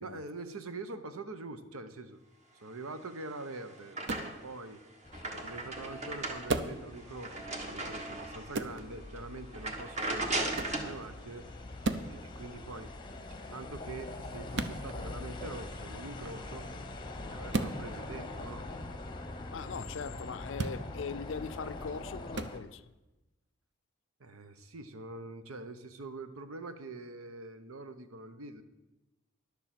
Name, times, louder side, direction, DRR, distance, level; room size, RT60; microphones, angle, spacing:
voice 1, 0.0-2.2 2.5-4.8 5.3-11.5 12.1-16.7 17.1-18.7 24.2-28.6, right 2 dB, 85° right, 0.9 m, -44 dB
sound 1, 3.0-4.6 5.0-8.6 9.0-9.2 9.5-11.0, right 2 dB, 35° right, 1.4 m, -37 dB
sound 2, 4.0-4.3 6.5-6.8 8.5-8.8 10.5-10.8 11.8-12.1 14.5-14.8 17.5-17.8 20.5-20.8 22.3-22.5, right 3 dB, 55° right, 0.7 m, -33 dB
sound 3, 5.0-22.6, left 2 dB, 20° left, 0.8 m, -44 dB
voice 2, 19.5-22.8, left 5 dB, 60° left, 0.4 m, -40 dB
11.0 x 7.0 x 7.5 m
head